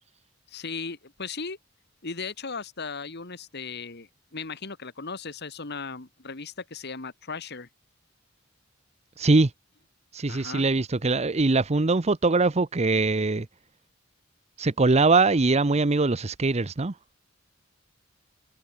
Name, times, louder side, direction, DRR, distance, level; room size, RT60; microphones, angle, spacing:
voice 1, 0.5-1.6 2.0-7.7 10.3-10.6, left 4 dB, 55° left, 1.9 m, -37 dB
voice 2, 9.2-9.5 10.1-13.5 14.6-16.9, right 3 dB, 35° right, 0.7 m, -22 dB
head